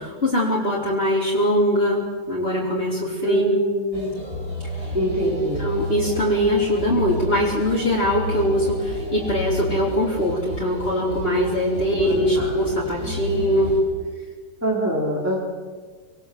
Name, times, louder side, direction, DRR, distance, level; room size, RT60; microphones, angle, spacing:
voice 1, 0.0-2.0 2.3-3.4 4.8-4.9 5.2-13.7, equal, 30° left, -6 dB, 4.6 m, -22 dB
voice 2, 3.2-4.2 4.9-5.6 12.0-12.5 14.6-15.5, right 1 dB, 10° right, -3 dB, 3.8 m, -25 dB
sound 1, 3.9-13.8, equal, 35° right, 5.9 m, -31 dB
26.5 x 21.5 x 7.7 m, 1.5 s
omnidirectional pair, 2.1 m